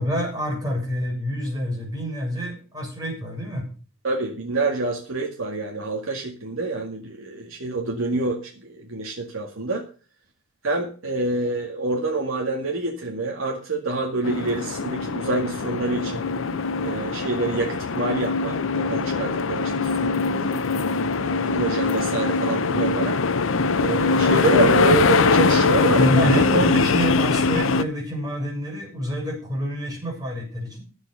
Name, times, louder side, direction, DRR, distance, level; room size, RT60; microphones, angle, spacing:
voice 1, 0.0-3.7 26.0-30.8, equal, 20° right, -1 dB, 7.9 m, -27 dB
voice 2, 4.0-9.8 10.6-16.3 16.8-20.6 21.2-23.2 23.8-26.4, right 3 dB, 85° right, 1 dB, 2.0 m, -27 dB
sound 1, 14.2-27.8, left 4 dB, 75° left, 0.7 m, -22 dB
11.5 x 8.0 x 6.9 m, 0.37 s
head